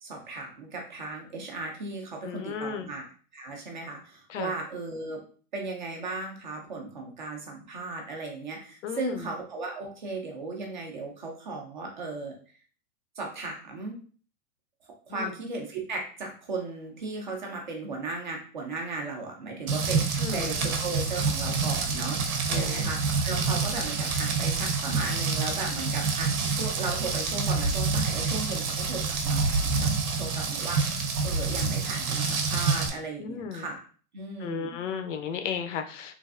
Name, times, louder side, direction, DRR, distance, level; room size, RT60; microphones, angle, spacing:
voice 1, 0.0-3.1 3.3-5.2 5.5-12.3 13.2-14.0 15.1-29.9 30.2-33.8 34.1-34.8, right 3 dB, 35° right, 1 dB, 0.4 m, -36 dB
voice 2, 2.2-2.9 4.3-4.5 8.8-9.3 15.1-15.3 20.2-20.5 22.5-22.9 33.2-33.6 34.4-36.1, left 6 dB, 60° left, 7 dB, 0.5 m, -34 dB
Rain, 19.7-32.9, right 4 dB, 85° right, 0.8 m, -27 dB
3.1 x 2.4 x 2.4 m, 0.42 s
supercardioid pair, 170°, 42 cm